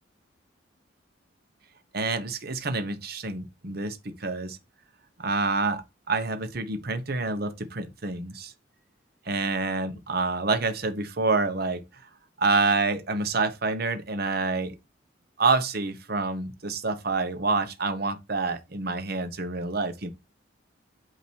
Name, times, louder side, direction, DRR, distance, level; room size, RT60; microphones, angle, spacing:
voice 1, 1.9-4.6 5.2-8.5 9.3-11.8 12.4-14.7 15.4-20.1, right 3 dB, 55° right, 1.0 m, -27 dB
8.5 x 2.9 x 4.5 m
head